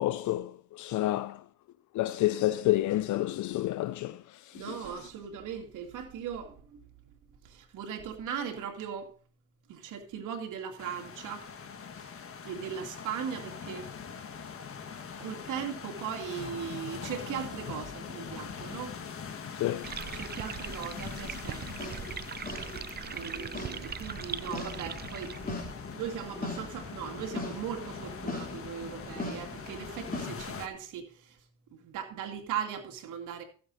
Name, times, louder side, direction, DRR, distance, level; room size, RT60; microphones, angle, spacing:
voice 1, 0.0-1.4 1.9-4.9 19.5-19.9, left 15 dB, 75° left, 0.5 m, -29 dB
voice 2, 4.5-6.8 7.4-9.1 9.7-11.5 11.9-12.1 12.4-13.9 15.2-19.0 19.9-21.9 23.1-25.3 25.9-31.4 31.7-33.4, right 8 dB, 85° right, 2.5 m, -38 dB
sound 1, 10.8-30.7, left 6 dB, 45° left, 1.5 m, -43 dB
sound 2, 19.8-25.7, right 7 dB, 35° right, 0.6 m, -40 dB
sound 3, 21.4-30.3, left 2 dB, 30° left, 3.5 m, -41 dB
14.0 x 7.8 x 4.1 m
cardioid pair, 90°, 30 cm